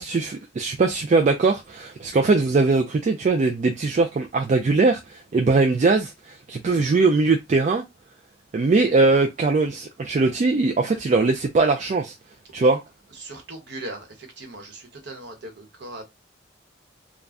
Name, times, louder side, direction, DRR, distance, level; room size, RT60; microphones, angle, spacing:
voice 1, 0.0-7.8 8.5-12.1 12.5-12.8, right 3 dB, 40° right, 0.3 m, -21 dB
voice 2, 13.2-16.0, right 2 dB, 55° right, 1.0 m, -39 dB
2.5 x 2.1 x 3.4 m
head